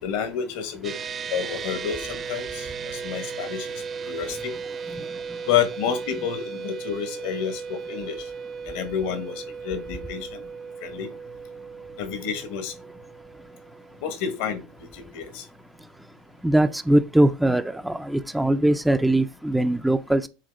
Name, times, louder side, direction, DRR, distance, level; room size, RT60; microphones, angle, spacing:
voice 1, 0.0-1.0 1.3-4.5 5.5-8.3 8.6-10.5 10.8-11.1 12.0-12.7 14.0-15.4, left 8 dB, 70° left, 1.6 m, -29 dB
sound 1, 0.8-14.4, right 6 dB, 35° right, 0.8 m, -36 dB
voice 2, 16.4-20.3, right 1 dB, 5° right, 0.5 m, -21 dB
7.7 x 3.8 x 3.7 m
hypercardioid pair, 95°, 0 cm